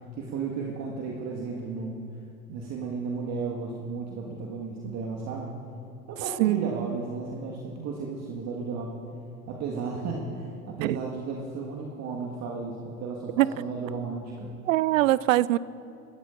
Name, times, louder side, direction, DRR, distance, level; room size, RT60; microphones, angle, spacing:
voice 1, 0.1-2.0 2.5-5.6 6.1-9.0 9.5-14.5, right 4 dB, 35° right, -1 dB, 1.6 m, -34 dB
voice 2, 6.4-6.8 10.8-11.0 13.4-13.5 14.7-15.6, right 16 dB, 60° right, 19 dB, 0.5 m, -22 dB
26.0 x 14.0 x 2.5 m, 2.6 s
figure-of-eight pair, 80°, 45 cm